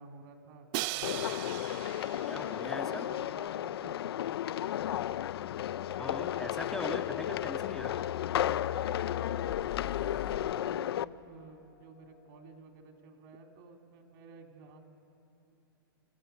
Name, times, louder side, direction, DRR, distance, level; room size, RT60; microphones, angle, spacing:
voice 1, 0.0-1.4 2.5-4.7 9.8-14.9, right 3 dB, 60° right, 3 dB, 2.9 m, -52 dB
Crash cymbal, 0.7-2.7, right 17 dB, 40° right, 0.4 m, -38 dB
sound 1, 1.0-11.1, left 11 dB, 75° left, 0.4 m, -33 dB
voice 2, 2.3-3.1 6.0-7.9, left 1 dB, 5° left, 3 dB, 0.7 m, -41 dB
sound 2, 4.8-10.5, left 11 dB, 50° left, 0.8 m, -43 dB
28.0 x 14.0 x 6.8 m, 2.9 s
hypercardioid pair, 125°, 13 cm